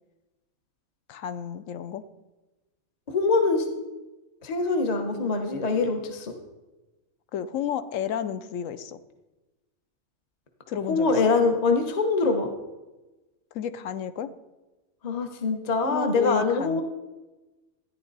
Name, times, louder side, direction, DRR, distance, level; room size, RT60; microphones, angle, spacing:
voice 1, 1.1-2.0 7.3-9.0 10.7-11.2 13.5-14.3 15.8-16.8, left 9 dB, 65° left, 13 dB, 1.0 m, -31 dB
voice 2, 3.1-3.6 4.4-6.3 10.9-12.5 15.0-16.8, left 3 dB, 30° left, 4 dB, 1.0 m, -24 dB
14.0 x 10.5 x 4.0 m, 1.1 s
omnidirectional pair, 1.5 m